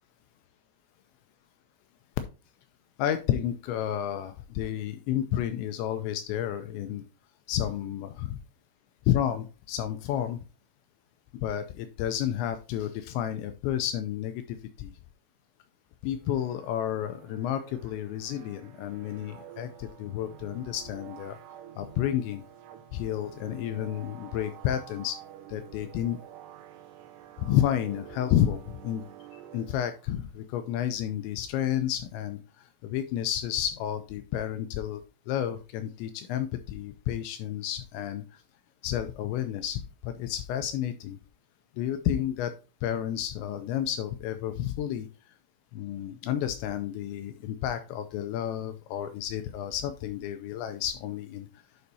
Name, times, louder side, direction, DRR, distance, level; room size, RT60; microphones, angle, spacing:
voice 1, 3.0-7.0 7.5-8.4 9.1-10.4 11.4-14.9 16.0-21.4 21.8-22.4 22.9-25.2 25.5-26.2 27.4-29.0 29.3-32.4 32.8-35.0 35.3-38.2 38.8-41.2 41.8-42.6 42.8-45.1 45.7-51.5, left 11 dB, 85° left, 9 dB, 2.6 m, -31 dB
sound 1, 16.2-30.3, right 11 dB, 85° right, 2.4 m, -49 dB
11.0 x 5.3 x 2.7 m, 0.32 s
omnidirectional pair, 5.7 m